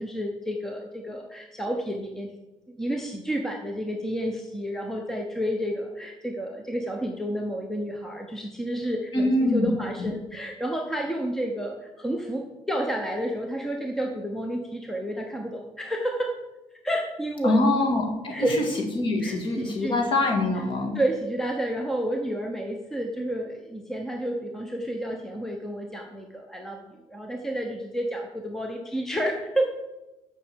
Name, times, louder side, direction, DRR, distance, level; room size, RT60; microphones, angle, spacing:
voice 1, 0.0-2.3 2.7-16.3 16.8-17.6 18.3-18.6 19.2-20.0 20.9-29.7, right 1 dB, 5° left, 2 dB, 0.7 m, -30 dB
voice 2, 9.1-9.7 10.0-10.1 17.4-18.3 19.0-20.9, left 2 dB, 40° left, 2 dB, 2.0 m, -24 dB
7.6 x 6.0 x 7.2 m, 1.0 s
cardioid pair, 175°, 12 cm